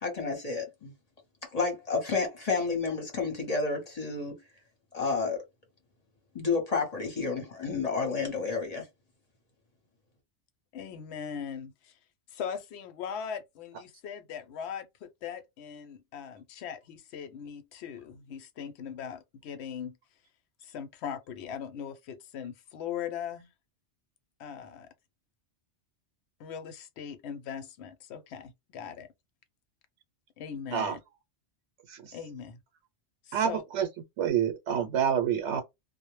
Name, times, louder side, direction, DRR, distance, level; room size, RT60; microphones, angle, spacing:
voice 1, 0.0-0.9 1.5-4.4 4.9-5.4 6.3-8.9, left 4 dB, 40° left, 0.8 m, -30 dB
voice 2, 10.7-12.0 12.3-20.0 20.6-23.5 24.4-24.9 26.4-29.1 30.4-31.0 32.1-32.6 33.2-33.6, left 7 dB, 70° left, 0.8 m, -40 dB
voice 3, 33.3-33.9 34.2-35.6, right 8 dB, 80° right, 0.9 m, -28 dB
2.1 x 2.0 x 3.0 m
omnidirectional pair, 1.2 m